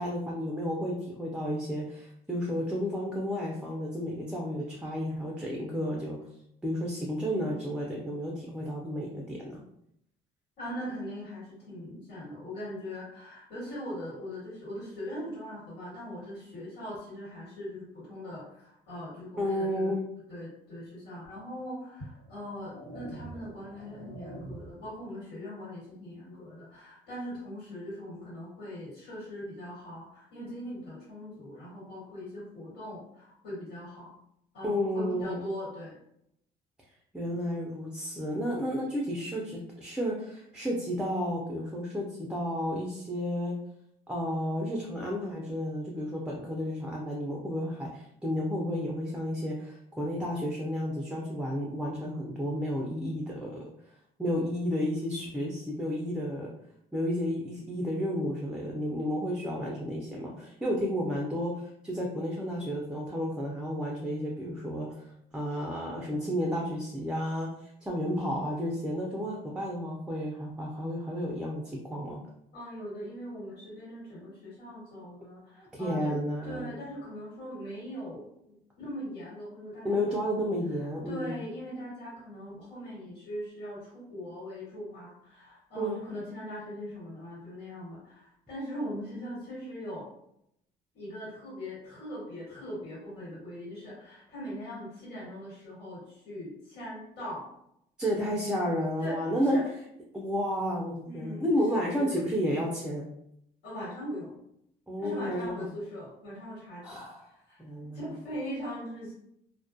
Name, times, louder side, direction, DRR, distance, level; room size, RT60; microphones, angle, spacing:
voice 1, 0.0-6.2 6.6-9.6 19.4-20.1 34.6-35.4 37.1-43.5 44.1-53.6 54.2-56.5 56.9-64.9 65.3-72.2 75.6-76.7 79.8-81.4 85.8-86.0 98.0-99.6 100.1-103.0 104.9-105.7 106.8-107.3 107.6-108.1, equal, 5° right, -2 dB, 0.4 m, -32 dB
voice 2, 10.6-19.9 20.3-34.1 34.5-35.9 72.5-76.2 76.4-80.2 80.7-90.1 90.9-97.4 99.0-99.6 101.0-101.5 101.8-102.3 103.6-104.3 105.0-106.8 107.5-109.1, equal, 80° left, -7 dB, 1.4 m, -40 dB
sound 1, 21.2-21.4 22.1-24.9, right 1 dB, 15° left, 1.0 m, -45 dB
2.3 x 2.1 x 2.5 m, 0.75 s
cardioid pair, 110°, 17 cm